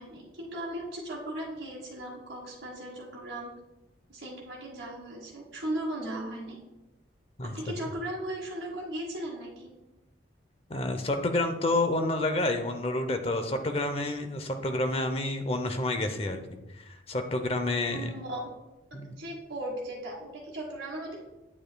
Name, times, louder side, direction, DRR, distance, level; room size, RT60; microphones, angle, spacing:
voice 1, 0.0-3.5 4.1-6.6 7.5-9.7 17.9-18.4 19.2-21.1, right 1 dB, 75° right, -6 dB, 1.5 m, -37 dB
voice 2, 10.7-18.1 18.9-19.1, left 2 dB, 30° left, 7 dB, 0.7 m, -29 dB
8.7 x 7.8 x 2.3 m, 1.0 s
head